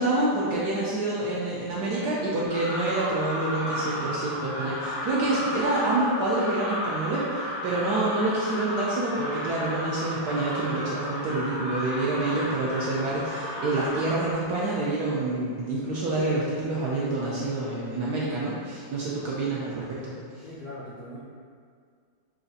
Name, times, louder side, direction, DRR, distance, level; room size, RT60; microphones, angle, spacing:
voice 1, 0.0-20.4, right 2 dB, 75° right, -6 dB, 0.9 m, -27 dB
sound 1, 2.4-14.3, equal, 80° left, 2.2 m, -33 dB
voice 2, 20.4-21.2, left 1 dB, 65° left, -10 dB, 0.8 m, -41 dB
5.8 x 2.4 x 2.6 m, 2.1 s
omnidirectional pair, 2.1 m